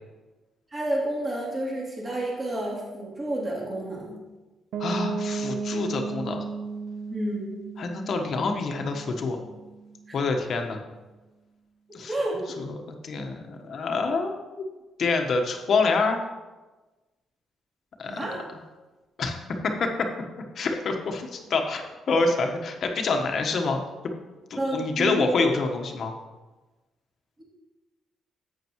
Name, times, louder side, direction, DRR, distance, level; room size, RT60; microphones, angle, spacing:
voice 1, 0.7-4.2 7.1-7.6 10.1-10.2 12.1-12.4 18.0-18.4 24.6-25.2, right 1 dB, 25° right, -5 dB, 3.2 m, -30 dB
Piano, 4.7-10.4, right 4 dB, 80° right, 0.8 m, -35 dB
voice 2, 4.8-6.4 7.8-9.4 10.1-10.8 11.9-12.2 12.6-12.8 13.0-14.6 15.0-16.2 18.0-18.1 19.2-19.4 19.6-19.9 20.5-23.8 24.7-26.1, left 3 dB, 55° left, 4 dB, 1.3 m, -26 dB
11.0 x 8.4 x 3.1 m, 1.2 s
cardioid pair, 90°, 0 cm